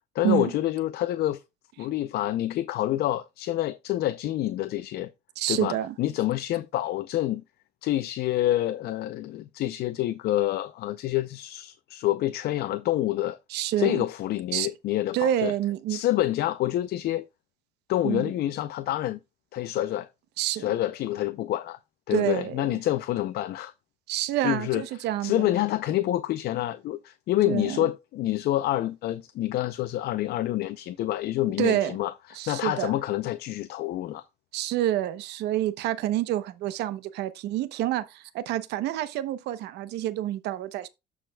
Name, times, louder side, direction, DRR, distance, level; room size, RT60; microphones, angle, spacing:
voice 1, 0.1-1.4 1.8-5.1 5.5-7.4 7.8-13.4 13.8-15.5 15.9-17.3 17.9-19.2 19.5-20.1 20.5-21.8 22.1-23.7 24.4-24.8 25.2-32.1 32.5-34.2, left 14 dB, 70° left, 0.6 m, -27 dB
voice 2, 5.4-5.9 13.5-14.0 14.5-14.7 15.1-16.0 18.0-18.3 20.4-20.7 22.1-22.8 24.1-25.5 27.5-27.9 31.6-32.0 32.3-33.0 34.5-40.9, right 13 dB, 85° right, 0.9 m, -28 dB
14.0 x 4.9 x 2.3 m
cardioid pair, 110°, 17 cm